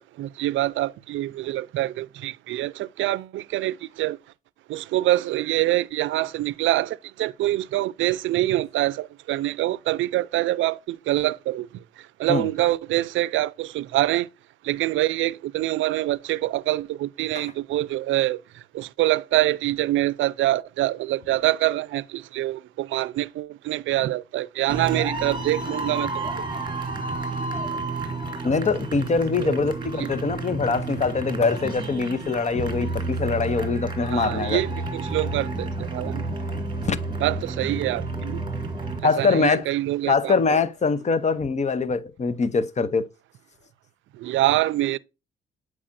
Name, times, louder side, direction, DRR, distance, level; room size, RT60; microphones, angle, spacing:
voice 1, 0.0-4.2 4.7-11.7 12.2-14.3 14.6-18.4 18.7-26.4 29.4-29.7 30.0-30.1 34.1-36.2 37.2-38.4 39.0-40.6 44.2-45.0, right 15 dB, 80° right, 0.5 m, -25 dB
sound 1, 24.7-39.0, right 3 dB, 25° right, 2.1 m, -30 dB
voice 2, 28.4-34.6 36.9-37.0 39.0-39.7 40.1-43.0, left 4 dB, 35° left, 0.7 m, -23 dB
8.5 x 4.8 x 2.6 m
cardioid pair, 90°, 20 cm